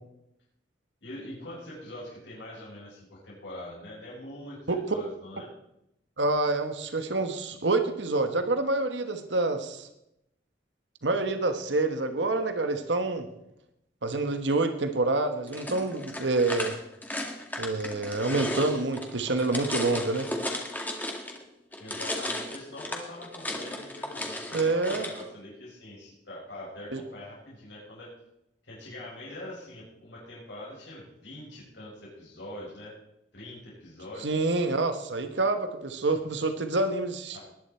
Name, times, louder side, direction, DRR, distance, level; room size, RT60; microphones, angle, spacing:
voice 1, 1.0-5.5 21.8-28.1 28.6-33.0 33.3-34.4 37.3-37.4, left 1 dB, 85° left, -5 dB, 6.4 m, -43 dB
voice 2, 6.2-9.9 11.0-13.3 14.0-16.7 17.6-20.3 24.5-25.1 26.9-27.0 34.2-37.4, right 2 dB, 90° right, 8 dB, 1.3 m, -27 dB
sound 1, 15.5-21.4 21.7-25.2, left 1 dB, 10° left, 2.0 m, -35 dB
20.0 x 10.5 x 4.4 m, 0.83 s
head